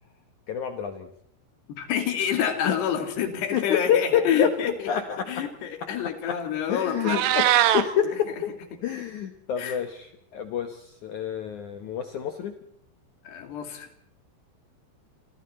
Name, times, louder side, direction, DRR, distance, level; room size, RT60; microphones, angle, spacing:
voice 1, 0.5-1.1 2.6-2.8 3.5-5.4 6.2-8.5 8.8-12.6, left 8 dB, 80° left, 7 dB, 1.7 m, -28 dB
voice 2, 1.7-4.9 5.3-7.2 9.6-9.8 13.3-13.9, left 8 dB, 65° left, 6 dB, 4.3 m, -27 dB
Meow, 6.9-7.8, right 12 dB, 75° right, 3.2 m, -21 dB
27.5 x 27.5 x 4.3 m, 0.68 s
omnidirectional pair, 5.3 m